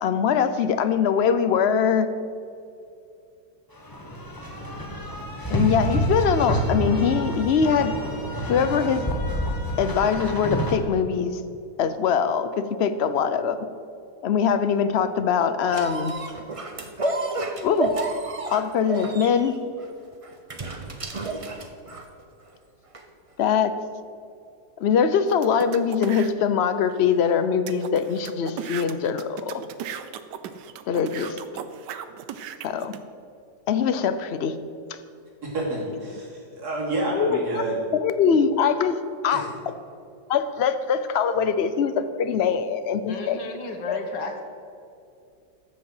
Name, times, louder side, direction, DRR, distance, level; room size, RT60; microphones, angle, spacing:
voice 1, 0.0-2.1 5.5-7.9 8.5-9.1 9.8-11.4 11.8-13.7 14.2-16.1 17.6-17.9 18.5-19.5 23.4-23.7 24.8-29.6 30.9-31.4 32.6-32.9 33.7-34.6 37.1-37.6 37.9-39.5 40.3-43.4 43.9-44.0, left 7 dB, 60° left, 11 dB, 0.6 m, -22 dB
sound 1, 3.8-10.8, equal, 15° left, 1.4 m, -28 dB
sound 2, 15.7-22.2 22.9-23.0, right 2 dB, 30° right, 0.7 m, -30 dB
sound 3, 25.3-26.3 26.9-27.0 27.2-27.3 27.7-33.0, right 9 dB, 80° right, 1.3 m, -37 dB
voice 2, 35.4-37.8 39.3-39.5, right 1 dB, 60° right, -4 dB, 3.7 m, -29 dB
voice 3, 43.1-44.4, left 3 dB, 90° left, 4 dB, 2.1 m, -33 dB
13.5 x 6.8 x 7.8 m, 2.5 s
omnidirectional pair, 1.9 m